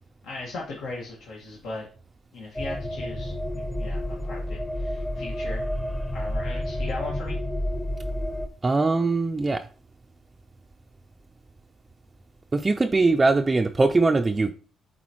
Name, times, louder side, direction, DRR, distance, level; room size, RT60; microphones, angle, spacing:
voice 1, 0.2-1.9 2.3-3.3 3.8-5.6 6.1-7.4, left 3 dB, 80° left, -4 dB, 1.7 m, -37 dB
sound 1, 2.6-8.5, equal, 15° left, 0.9 m, -30 dB
voice 2, 8.6-9.6 12.5-14.5, right 3 dB, 25° right, 5 dB, 0.4 m, -21 dB
8.3 x 4.1 x 3.0 m, 0.39 s
cardioid pair, 90°, 0 cm